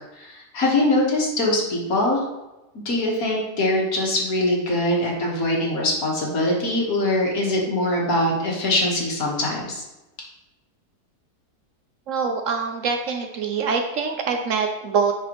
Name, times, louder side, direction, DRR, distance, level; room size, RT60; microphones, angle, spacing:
voice 1, 0.2-2.2 2.8-9.8, left 1 dB, 65° left, -2 dB, 1.9 m, -22 dB
voice 2, 12.1-15.1, right 5 dB, 65° right, 4 dB, 0.9 m, -24 dB
10.0 x 4.1 x 3.0 m, 1.0 s
omnidirectional pair, 1.7 m